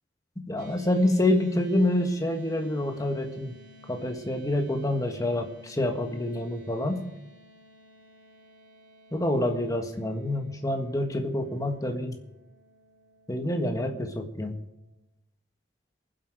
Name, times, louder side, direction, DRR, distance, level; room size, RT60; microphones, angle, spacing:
voice 1, 0.5-3.5 3.9-7.0 9.1-12.2 13.3-14.5, left 1 dB, 20° left, 4 dB, 1.6 m, -27 dB
sound 1, 0.6-15.0, left 1 dB, 50° right, 4.0 m, -55 dB
22.0 x 8.0 x 4.9 m, 0.88 s
head